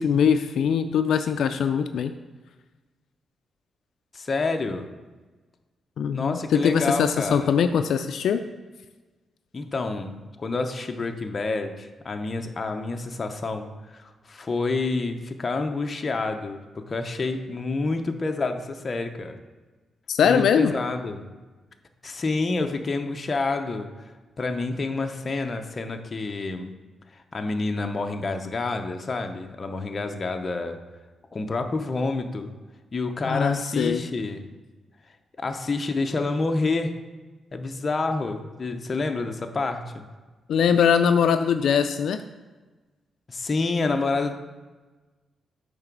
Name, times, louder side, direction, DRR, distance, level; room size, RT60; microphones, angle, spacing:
voice 1, 0.0-2.1 6.0-8.4 20.1-20.7 33.3-34.0 40.5-42.2, left 7 dB, 75° left, 8 dB, 0.3 m, -22 dB
voice 2, 4.1-4.9 6.1-7.5 9.5-19.4 20.2-21.2 22.0-26.7 27.1-30.8 31.3-32.5 32.9-34.5 35.4-36.9 37.5-40.0 43.3-44.3, left 3 dB, 30° left, 5 dB, 0.6 m, -28 dB
8.8 x 3.3 x 6.0 m, 1.3 s
wide cardioid pair, 135°, 0 cm